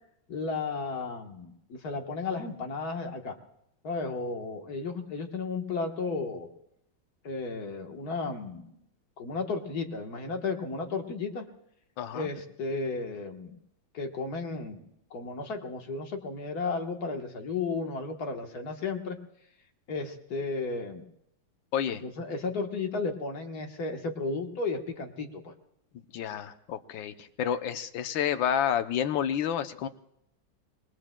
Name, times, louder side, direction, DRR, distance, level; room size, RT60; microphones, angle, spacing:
voice 1, 0.3-3.3 3.8-6.5 7.2-8.8 9.2-11.4 12.1-13.6 13.9-19.2 19.9-21.1 21.9-25.5, left 4 dB, 55° left, 3 dB, 1.8 m, -34 dB
voice 2, 12.0-12.3 21.7-22.0 25.9-29.9, left 9 dB, 80° left, 9 dB, 1.5 m, -30 dB
26.5 x 20.5 x 2.2 m, 0.78 s
omnidirectional pair, 2.1 m